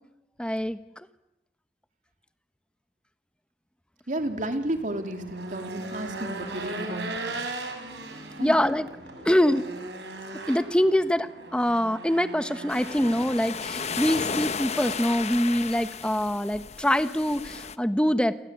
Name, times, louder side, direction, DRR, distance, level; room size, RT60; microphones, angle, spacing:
voice 1, 0.4-1.1 8.0-9.7 10.5-18.3, equal, 5° left, 11 dB, 1.1 m, -25 dB
voice 2, 4.1-7.1 8.4-8.6, right 1 dB, 45° right, 6 dB, 3.0 m, -32 dB
Race car auto racing / Engine, 4.2-14.3, right 2 dB, 75° right, 6.4 m, -38 dB
sound 1, 12.7-17.8, left 5 dB, 40° left, 1.0 m, -34 dB
29.0 x 23.5 x 8.2 m, 0.93 s
head